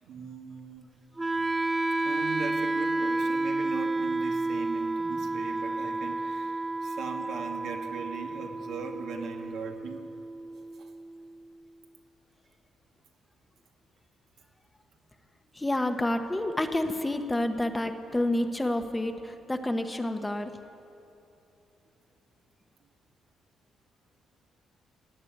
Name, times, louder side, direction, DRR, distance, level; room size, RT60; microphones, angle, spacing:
voice 1, 0.0-0.9 2.0-10.0 10.8-10.9, right 5 dB, 80° right, 2 dB, 1.6 m, -40 dB
Wind instrument woodwind instrument, 1.2-11.2, right 2 dB, 15° right, 0.4 m, -31 dB
voice 2, 15.6-20.5, left 1 dB, 15° left, 7 dB, 0.9 m, -29 dB
17.0 x 8.8 x 9.1 m, 2.8 s
cardioid pair, 90°, 0 cm